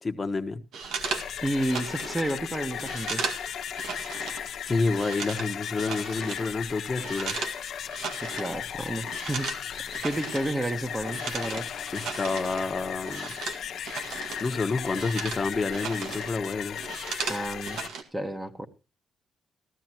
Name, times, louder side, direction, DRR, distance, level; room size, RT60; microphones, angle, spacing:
voice 1, 0.0-0.6 4.7-7.4 11.9-13.3 14.1-16.8, left 3 dB, 30° left, 1.4 m, -29 dB
sound 1, 0.7-4.5 4.7-7.6 7.9-8.6 8.9-14.5 14.8-16.3 16.6-18.0, right 5 dB, 80° right, 2.0 m, -36 dB
sound 2, 0.8-17.9, left 9 dB, 70° left, 1.2 m, -36 dB
voice 2, 1.4-3.2 8.2-11.7 17.3-17.8 18.1-18.7, right 1 dB, 15° right, 1.5 m, -31 dB
15.0 x 13.5 x 3.0 m
cardioid pair, 90°, 0 cm